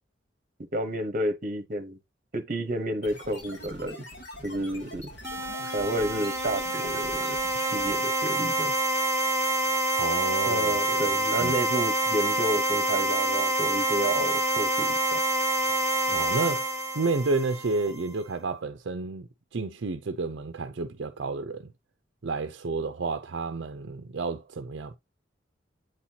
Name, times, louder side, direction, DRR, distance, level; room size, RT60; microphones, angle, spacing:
voice 1, 0.7-2.0 2.3-4.0 4.4-5.1 5.7-7.4 7.7-8.8 10.5-15.2, right 1 dB, 45° right, 1.0 m, -30 dB
sound 1, 3.0-8.2, equal, 65° left, 2.4 m, -44 dB
sound 2, 5.2-18.0, right 1 dB, 15° right, 1.4 m, -27 dB
voice 2, 10.0-11.1 11.4-11.6 16.1-21.7 22.2-25.0, right 3 dB, 65° right, 0.6 m, -31 dB
8.0 x 4.2 x 2.8 m
head